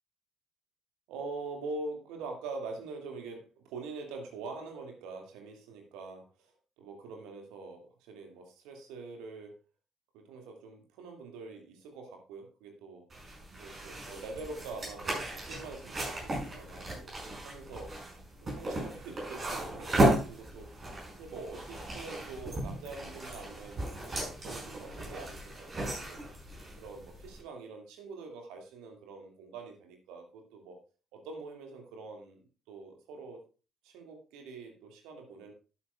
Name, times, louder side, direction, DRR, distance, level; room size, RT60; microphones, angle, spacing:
voice 1, 1.1-9.6 10.1-13.1 13.6-18.0 18.4-20.9 21.1-26.2 26.8-30.8 31.1-32.4 32.7-33.4 33.8-35.5, right 3 dB, 65° right, 3 dB, 2.2 m, -44 dB
sound 1, 13.1-27.4, right 1 dB, 35° right, 5.8 m, -35 dB
11.5 x 11.0 x 2.4 m, 0.34 s
figure-of-eight pair, 45°, 0 cm